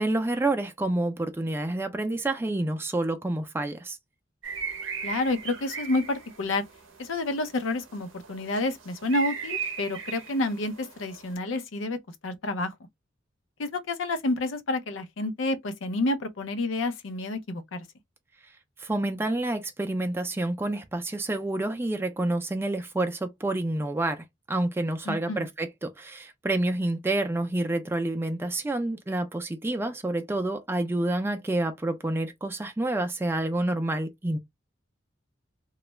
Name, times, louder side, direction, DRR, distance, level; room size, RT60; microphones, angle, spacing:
voice 1, 0.0-4.0 18.8-34.4, right 2 dB, 10° right, 0.4 m, -28 dB
sound 1, 4.4-11.3, right 6 dB, 85° right, 0.6 m, -38 dB
voice 2, 5.0-6.6 7.0-12.0 12.2-12.7 13.6-17.8 25.1-25.5, left 2 dB, 85° left, 0.5 m, -29 dB
2.3 x 2.0 x 3.0 m
head